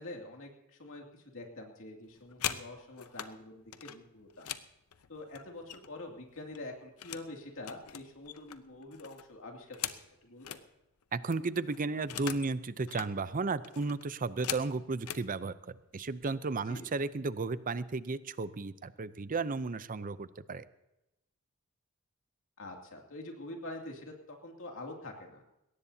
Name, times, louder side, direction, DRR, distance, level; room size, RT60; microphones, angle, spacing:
voice 1, 0.0-4.5 5.1-9.8 10.2-10.6 16.7-16.9 22.6-25.4, left 2 dB, 65° left, 1 dB, 2.6 m, -46 dB
sound 1, 2.0-3.3 3.7-6.1 6.4-7.3 7.6-10.6 11.0-11.1 11.3-12.5 12.8-13.1 13.6-15.3 16.1-16.3 16.6-16.9 17.2-17.7, left 10 dB, 85° left, 0.8 m, -41 dB
voice 2, 11.1-20.6, right 3 dB, 40° right, 15 dB, 0.6 m, -34 dB
21.0 x 18.0 x 2.8 m, 0.93 s
head